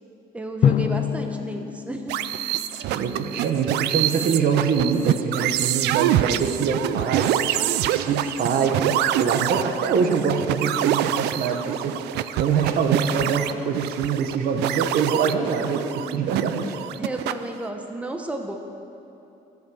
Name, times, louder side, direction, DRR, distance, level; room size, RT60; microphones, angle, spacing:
voice 1, 0.3-2.2 7.5-7.7 16.0-16.3 17.0-18.6, right 2 dB, 10° right, 3 dB, 1.0 m, -33 dB
Drum, 0.6-3.3, left 8 dB, 40° left, 0.4 m, -26 dB
sound 1, 2.1-17.6, right 13 dB, 80° right, 0.5 m, -26 dB
voice 2, 2.9-7.6 7.9-11.9 12.4-16.8, right 5 dB, 60° right, 4 dB, 1.3 m, -24 dB
13.0 x 8.4 x 7.0 m, 2.8 s
cardioid pair, 110°, 17 cm